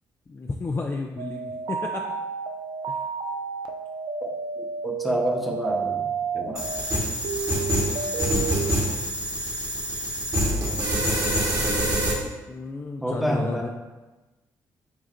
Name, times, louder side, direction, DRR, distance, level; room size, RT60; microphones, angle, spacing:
voice 1, 0.3-2.1 2.9-3.0 12.5-13.7, left 3 dB, 25° left, 2 dB, 0.4 m, -32 dB
sound 1, 1.2-6.8 7.2-8.7, right 5 dB, 60° right, 0.5 m, -31 dB
voice 2, 4.6-6.1 6.3-6.7 13.0-13.7, equal, ahead, 0 dB, 1.0 m, -28 dB
sound 2, 6.6-12.1, equal, 45° right, 1.3 m, -25 dB
7.3 x 2.4 x 2.6 m, 1.1 s
hypercardioid pair, 45°, 9 cm